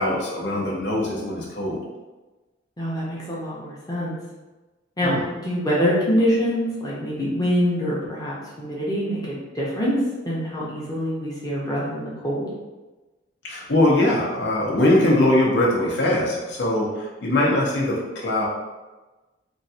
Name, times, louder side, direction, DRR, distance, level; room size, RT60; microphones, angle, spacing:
voice 1, 0.0-1.8 5.0-5.2 13.4-18.4, left 1 dB, 65° left, -3 dB, 0.7 m, -21 dB
voice 2, 2.8-4.2 5.0-10.0 10.3-12.5, equal, 20° left, -6 dB, 0.7 m, -25 dB
3.1 x 2.4 x 2.7 m, 1.2 s
head